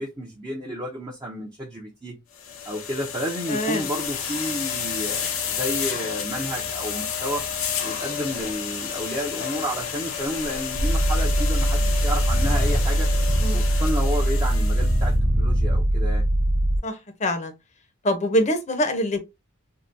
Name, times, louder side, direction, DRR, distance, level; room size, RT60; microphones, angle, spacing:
voice 1, 0.0-2.2 2.7-7.5 7.8-13.1 13.5-16.2, equal, 20° right, 0.6 m, -31 dB
sound 1, 2.4-15.1, left 7 dB, 80° left, 0.8 m, -31 dB
voice 2, 3.5-3.9 13.4-13.6 16.8-17.5 18.0-19.2, equal, 35° left, 0.7 m, -24 dB
sound 2, 10.8-16.8, right 1 dB, 35° right, 1.1 m, -21 dB
3.6 x 2.2 x 2.6 m
head